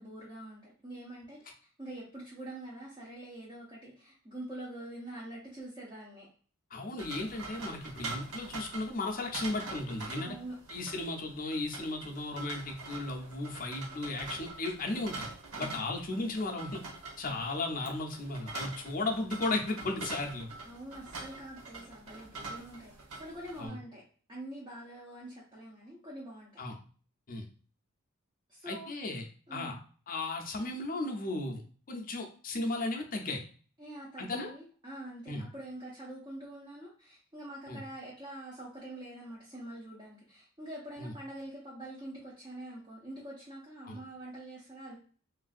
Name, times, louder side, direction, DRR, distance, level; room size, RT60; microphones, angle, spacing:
voice 1, 0.0-6.3 10.1-10.6 15.5-15.8 20.6-24.0 24.3-26.6 28.5-28.9 29.5-29.7 33.8-45.0, right 1 dB, 20° right, -5 dB, 0.7 m, -45 dB
voice 2, 6.7-10.4 10.7-15.3 15.6-16.8 17.2-20.5 23.6-23.8 26.6-26.8 27.3-27.5 28.7-29.2 29.5-29.8 30.1-31.6 31.9-33.4 34.2-34.5 35.3-35.5 37.7-37.8 41.0-41.1 43.8-44.0, left 2 dB, 40° left, 2 dB, 0.5 m, -35 dB
sound 1, 7.0-23.7, right 3 dB, 85° right, 0.9 m, -44 dB
3.2 x 2.5 x 2.4 m, 0.42 s
head